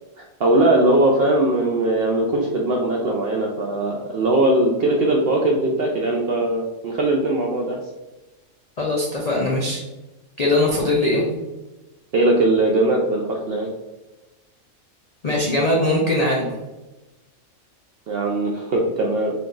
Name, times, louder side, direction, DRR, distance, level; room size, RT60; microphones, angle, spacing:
voice 1, 0.2-7.8 12.1-13.7 18.1-19.3, right 1 dB, 65° right, 0 dB, 0.6 m, -20 dB
voice 2, 8.8-9.8 10.4-11.2 15.2-16.6, left 1 dB, 60° left, -3 dB, 0.4 m, -20 dB
3.9 x 2.3 x 3.7 m, 1.1 s
omnidirectional pair, 1.5 m